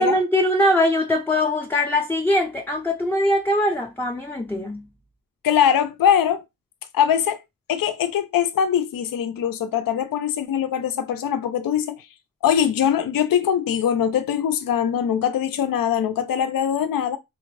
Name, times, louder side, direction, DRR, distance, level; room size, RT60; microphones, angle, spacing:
voice 1, 0.0-4.8, left 1 dB, 5° left, 0.5 m, -21 dB
voice 2, 5.4-6.4 6.9-7.4 7.7-12.0 12.4-17.2, left 9 dB, 70° left, 0.5 m, -22 dB
4.0 x 2.5 x 3.2 m
wide cardioid pair, 105°, 36 cm